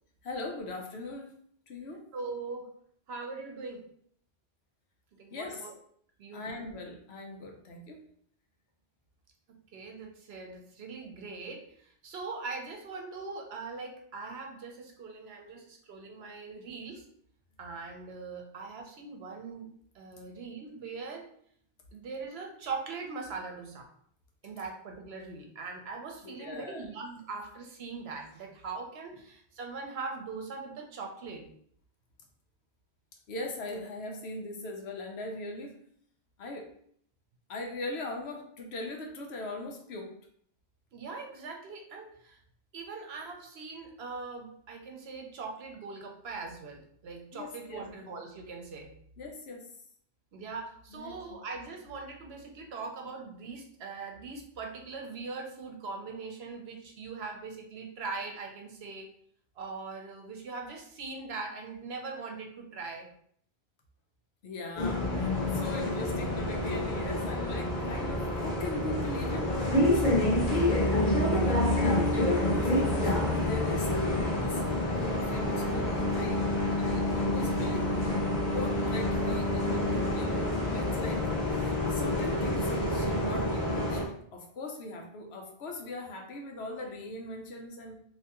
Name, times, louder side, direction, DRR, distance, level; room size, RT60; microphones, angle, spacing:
voice 1, 0.2-1.3 1.7-2.0 5.3-5.7 6.3-8.0 26.2-26.9 33.3-35.7 36.4-36.7 37.5-40.1 47.3-47.9 49.2-49.7 50.9-51.4 64.4-73.9 74.4-76.5 76.8-78.1 78.5-81.2 81.6-84.0 84.3-88.0, left 2 dB, 85° left, 2 dB, 1.0 m, -40 dB
voice 2, 2.1-2.7 3.1-3.8 5.2-5.7 6.2-6.4 9.7-17.0 17.6-19.7 19.9-21.3 21.9-23.9 24.4-31.4 40.9-42.4 42.7-48.9 50.3-59.1 59.6-63.1, right 4 dB, 75° right, 2 dB, 0.9 m, -41 dB
Bus, 64.8-84.0, left 1 dB, 50° left, 1.0 m, -28 dB
3.3 x 2.8 x 2.9 m, 0.63 s
omnidirectional pair, 1.1 m